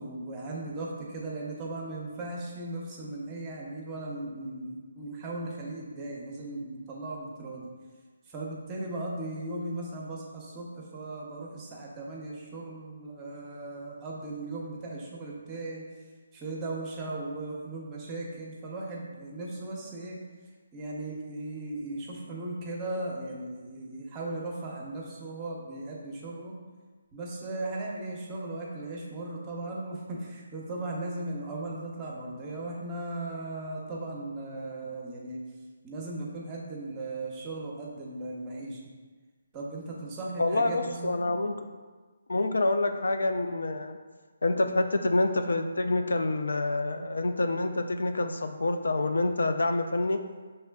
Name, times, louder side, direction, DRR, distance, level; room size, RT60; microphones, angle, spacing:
voice 1, 0.0-7.7 8.3-10.7 10.9-15.8 16.3-20.2 20.7-26.6 27.1-35.4 35.8-38.8 39.5-41.4, right 2 dB, 20° right, -2 dB, 0.8 m, -37 dB
voice 2, 40.4-41.5 42.3-44.0 44.4-50.2, left 2 dB, 80° left, 7 dB, 0.3 m, -27 dB
5.8 x 3.2 x 2.3 m, 1.4 s
figure-of-eight pair, 150°, 0 cm